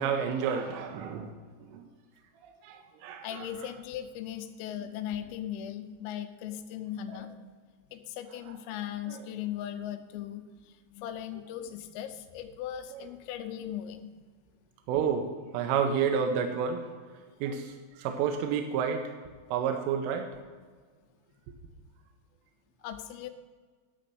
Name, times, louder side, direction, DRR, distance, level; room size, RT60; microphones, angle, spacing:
voice 1, 0.0-1.3 1.7-1.8 2.4-3.4 7.1-7.2 9.1-9.2 12.9-13.0 14.9-16.8 17.4-19.0 19.5-20.3, right 7 dB, 85° right, 5 dB, 3.2 m, -30 dB
voice 2, 3.2-7.3 7.9-14.1 22.8-23.3, left 10 dB, 85° left, 8 dB, 3.3 m, -38 dB
12.0 x 4.3 x 7.6 m, 1.5 s
omnidirectional pair, 5.8 m